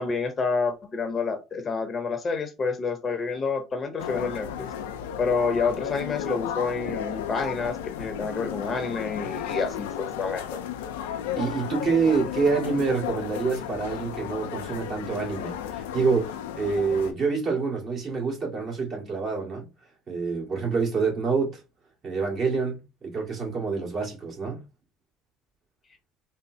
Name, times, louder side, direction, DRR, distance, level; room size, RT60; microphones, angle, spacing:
voice 1, 0.0-4.7 5.2-10.4, left 4 dB, 30° left, 0.8 m, -28 dB
sound 1, 4.0-17.1, left 9 dB, 90° left, 0.4 m, -34 dB
voice 2, 11.3-19.7 20.1-21.6 22.0-24.6, right 4 dB, 40° right, 2.0 m, -27 dB
4.0 x 2.0 x 2.7 m
supercardioid pair, 80°, 0 cm